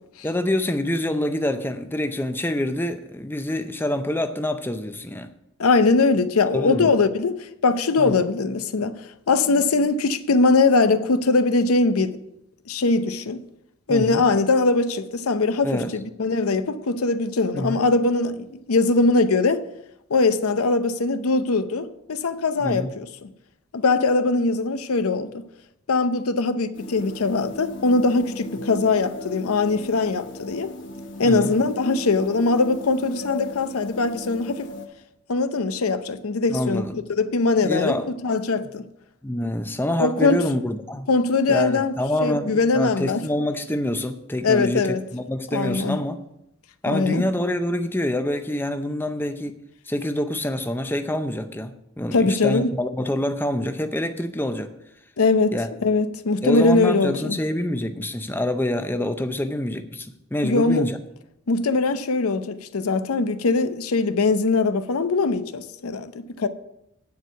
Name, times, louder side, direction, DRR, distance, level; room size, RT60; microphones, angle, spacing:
voice 1, 0.2-5.3 6.5-6.9 8.0-8.1 13.9-14.2 15.6-15.9 17.5-17.8 22.6-22.9 31.2-31.5 36.5-36.9 37.6-38.1 39.2-41.1 41.5-46.2 46.8-49.5 49.9-54.7 55.5-55.7 56.4-61.0, left 1 dB, 10° left, 0.5 m, -26 dB
voice 2, 5.6-12.2 12.7-13.4 13.9-19.6 20.1-23.3 23.7-25.4 25.9-30.7 31.2-34.7 35.3-38.8 40.0-40.5 41.1-41.9 42.2-43.3 44.4-45.0 45.5-46.0 46.9-47.3 52.1-52.7 55.2-57.4 60.4-60.9 61.5-66.5, left 3 dB, 90° left, 0.7 m, -21 dB
sound 1, 26.7-34.9, left 2 dB, 55° left, 1.1 m, -37 dB
9.4 x 4.7 x 7.8 m
head